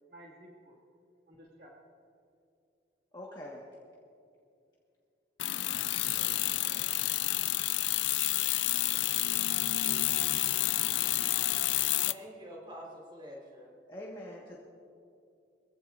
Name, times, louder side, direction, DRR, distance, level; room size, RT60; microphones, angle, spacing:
voice 1, 0.1-0.8 1.3-1.7 5.7-5.9, right 1 dB, 65° right, -3 dB, 2.2 m, -55 dB
voice 2, 3.1-3.6 7.3-7.5 13.9-14.6, left 1 dB, 25° left, -4 dB, 1.6 m, -44 dB
sound 1, 5.4-12.1, left 15 dB, 90° left, 0.4 m, -29 dB
voice 3, 6.1-7.0 12.1-13.7, equal, 30° right, -3 dB, 4.3 m, -48 dB
23.5 x 15.5 x 2.6 m, 2.5 s
head